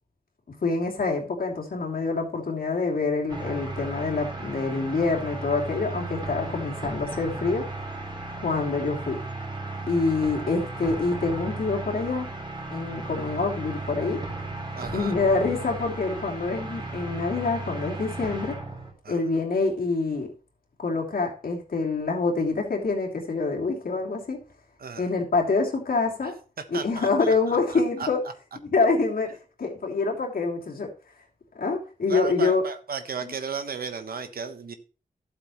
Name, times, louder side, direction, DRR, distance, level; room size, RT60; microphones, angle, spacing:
voice 1, 0.5-7.7 8.4-9.2 9.9-12.3 12.7-14.2 14.9-18.6 19.1-20.3 20.8-24.4 25.0-26.3 26.7-28.2 28.6-30.9 31.5-32.6 33.2-33.3, left 3 dB, 75° left, 0 dB, 2.8 m, -26 dB
sound 1, 3.3-18.9, right 2 dB, 30° right, 3.4 m, -35 dB
voice 2, 14.7-15.1 19.0-19.2 24.8-25.1 26.7-28.1 32.1-34.7, right 5 dB, 85° right, 9 dB, 1.2 m, -34 dB
12.0 x 7.9 x 3.0 m, 0.35 s
wide cardioid pair, 95°, 15 cm